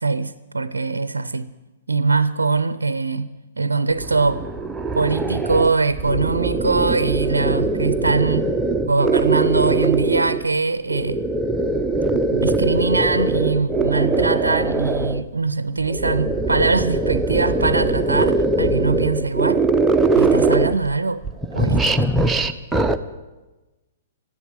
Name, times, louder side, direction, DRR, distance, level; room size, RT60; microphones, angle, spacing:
voice 1, 0.0-1.5 1.9-4.4 4.9-8.5 8.8-11.2 12.1-19.6 20.1-21.2 21.5-22.0, right 4 dB, 75° right, 0.5 m, -22 dB
sound 1, 3.9-10.4 10.9-15.2 15.8-21.0 21.2-23.0, right 3 dB, 5° right, 0.7 m, -21 dB
14.5 x 11.0 x 8.0 m
figure-of-eight pair, 115°, 0 cm